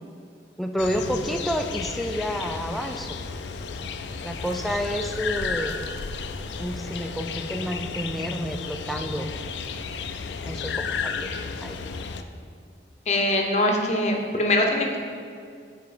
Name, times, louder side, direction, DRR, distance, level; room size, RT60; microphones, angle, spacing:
voice 1, 0.6-3.1 4.2-5.7 6.6-9.3 10.4-11.8, equal, ahead, 4 dB, 0.3 m, -29 dB
sound 1, 0.8-12.2, left 5 dB, 90° left, 0.4 m, -33 dB
voice 2, 13.1-15.0, left 1 dB, 40° left, 1 dB, 0.8 m, -22 dB
7.0 x 4.5 x 4.9 m, 2.3 s
head